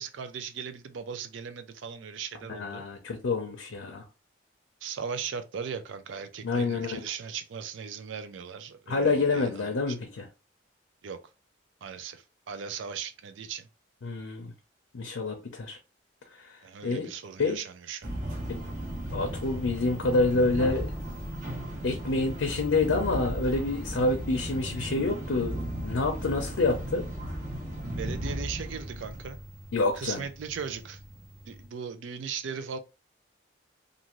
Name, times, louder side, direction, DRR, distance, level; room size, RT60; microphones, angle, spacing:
voice 1, 0.0-2.8 4.8-10.0 11.0-11.2 11.8-13.7 16.6-18.1 28.0-29.4 29.9-31.0 31.5-32.8, right 6 dB, 75° right, 0.4 m, -38 dB
voice 2, 2.5-4.0 6.4-7.0 8.9-10.3 14.0-14.5 14.9-15.8 16.3-16.6 16.8-17.1 17.4-17.6 18.5-18.6 19.1-20.9 21.8-27.0 29.7-30.2, left 3 dB, 85° left, 0.5 m, -27 dB
sound 1, 18.0-31.7, equal, 40° right, 0.8 m, -36 dB
2.5 x 2.5 x 3.0 m
head